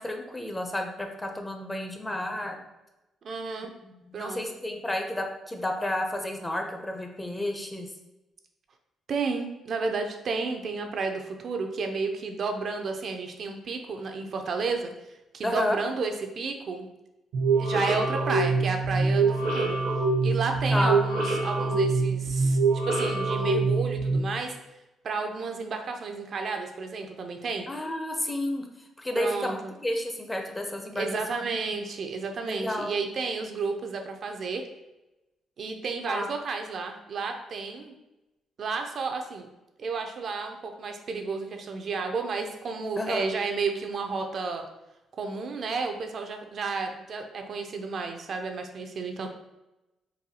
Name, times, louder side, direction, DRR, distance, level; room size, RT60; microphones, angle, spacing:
voice 1, 0.0-2.6 3.6-7.9 15.4-15.8 20.7-21.0 27.7-28.6 29.0-31.5 32.4-32.9 36.1-36.3 43.0-43.2, left 1 dB, 15° left, 3 dB, 0.5 m, -31 dB
voice 2, 3.2-3.7 4.1-4.4 9.1-14.9 15.3-16.9 17.6-19.8 20.2-22.6 22.8-24.6 25.0-27.7 29.2-29.7 30.9-34.6 35.6-38.0 38.6-39.5 39.8-44.6 45.2-49.3, right 4 dB, 55° right, 4 dB, 0.4 m, -32 dB
sound 1, 17.3-24.2, right 3 dB, 85° right, 0.8 m, -25 dB
4.0 x 2.3 x 2.7 m, 0.96 s
cardioid pair, 90°, 0 cm